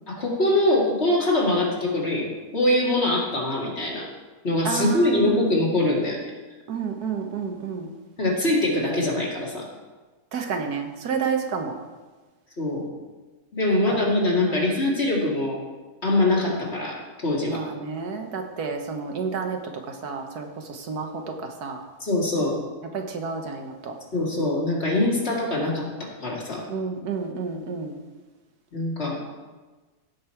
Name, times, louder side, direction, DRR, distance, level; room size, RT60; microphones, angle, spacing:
voice 1, 0.1-2.3 2.5-4.1 4.4-6.2 8.2-9.7 12.6-12.9 13.5-15.6 16.0-17.0 17.2-17.6 22.0-22.6 24.1-25.9 26.2-26.6 28.7-29.2, left 1 dB, 40° left, -3 dB, 2.4 m, -23 dB
voice 2, 4.6-5.4 6.7-7.9 10.3-11.7 13.7-14.0 14.5-14.7 17.5-19.6 19.9-21.8 22.9-23.9 26.7-27.9, right 5 dB, 80° right, 4 dB, 1.6 m, -30 dB
16.0 x 5.3 x 4.5 m, 1.3 s
omnidirectional pair, 1.7 m